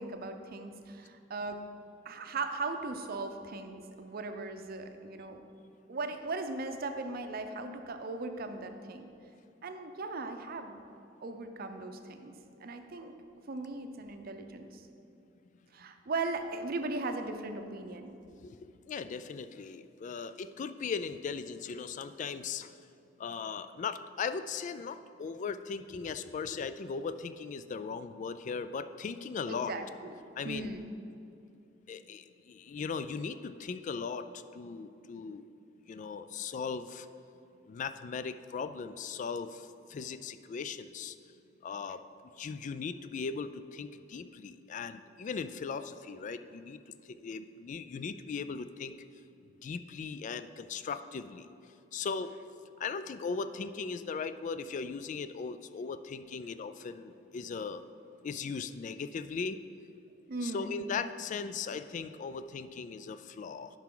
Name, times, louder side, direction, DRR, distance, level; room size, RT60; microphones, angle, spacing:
voice 1, 0.0-1.6 2.0-5.4 5.9-9.1 9.6-10.8 11.2-12.3 12.6-13.1 13.5-14.8 15.7-18.1 29.5-30.1 30.4-30.9 60.3-60.9, right 3 dB, 55° right, 7 dB, 0.6 m, -38 dB
voice 2, 18.4-22.7 23.2-29.7 30.4-30.7 31.9-34.3 34.5-35.4 35.9-37.1 37.7-41.2 41.6-42.0 42.4-46.8 47.2-48.9 49.6-51.5 51.9-52.3 52.8-57.8 58.2-59.6 60.4-63.7, left 5 dB, 40° left, 12 dB, 0.3 m, -38 dB
10.5 x 5.9 x 3.8 m, 2.6 s
head